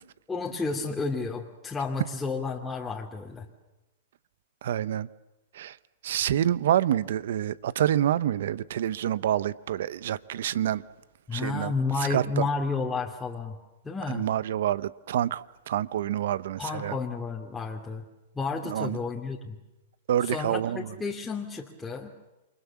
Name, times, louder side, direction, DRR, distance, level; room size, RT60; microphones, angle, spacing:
voice 1, 0.3-3.4 11.3-13.6 13.8-14.3 16.6-18.0 18.3-19.6 20.2-22.1, left 4 dB, 10° left, 2.6 m, -31 dB
voice 2, 4.6-5.1 5.5-5.8 6.0-10.8 11.3-11.7 12.1-12.5 14.1-17.0 18.6-19.0 20.1-20.9, right 11 dB, 70° right, 0.9 m, -27 dB
28.5 x 24.0 x 7.3 m
hypercardioid pair, 120°, 0 cm